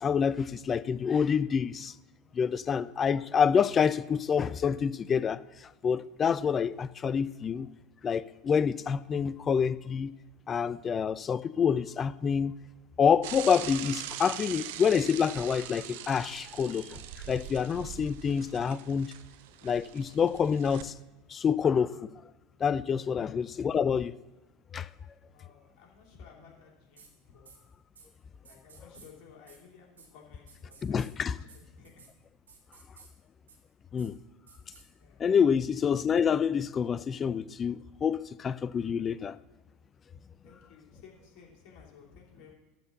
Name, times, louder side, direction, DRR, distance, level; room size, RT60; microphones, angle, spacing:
voice 1, 0.0-1.9 2.3-7.7 8.0-10.1 10.5-12.5 13.0-17.0 17.3-19.1 19.6-20.9 21.3-22.1 22.6-24.1 24.7-24.9 30.8-31.3 33.9-34.2 35.2-39.4, left 7 dB, 30° left, 0.4 m, -27 dB
Bicycle / Mechanisms, 13.2-20.8, right 11 dB, 65° right, 0.7 m, -42 dB
voice 2, 25.2-27.5 28.4-32.0 35.0-35.2 40.4-42.6, left 6 dB, 55° left, 3.0 m, -56 dB
sound 1, 27.0-27.1 27.5-27.6 28.0-28.1 28.5-29.1 29.5-29.6 30.0-30.1 30.5-31.1 31.5-31.6 31.8-32.1 32.5-33.1 33.5-33.6 34.0-34.1 34.5-34.8, right 6 dB, 80° right, 2.0 m, -54 dB
13.0 x 4.4 x 7.0 m
figure-of-eight pair, 80°, 0 cm